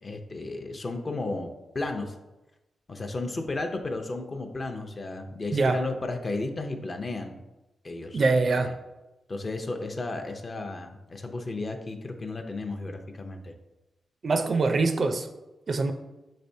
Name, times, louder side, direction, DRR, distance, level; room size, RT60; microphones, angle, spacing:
voice 1, 0.0-2.2 2.9-7.4 7.8-8.2 8.5-8.7 9.3-13.5, left 2 dB, 35° left, 4 dB, 0.6 m, -34 dB
voice 2, 5.5-5.8 8.1-8.7 14.2-15.3 15.7-15.9, right 3 dB, 50° right, 7 dB, 0.4 m, -23 dB
6.1 x 3.2 x 2.7 m, 1.0 s
cardioid pair, 80°, 0 cm